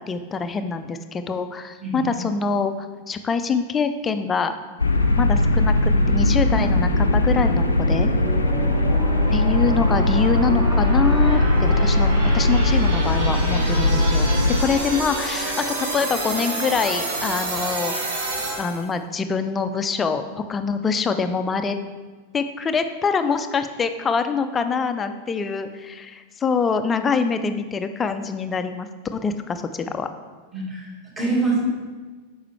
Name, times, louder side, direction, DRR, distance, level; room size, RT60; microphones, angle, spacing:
voice 1, 0.1-2.7 3.1-4.5 5.2-8.1 9.3-14.3 14.6-17.9 18.6-21.8 22.3-30.1, left 5 dB, 20° left, 9 dB, 0.5 m, -25 dB
voice 2, 1.8-2.1 8.7-8.9 30.5-31.7, right 3 dB, 20° right, -3 dB, 1.9 m, -25 dB
sound 1, 4.8-14.6, left 2 dB, 80° left, 0.5 m, -19 dB
sound 2, 4.9-18.9, right 2 dB, 65° right, 1.3 m, -29 dB
8.6 x 5.5 x 3.3 m, 1.4 s
figure-of-eight pair, 90°, 0 cm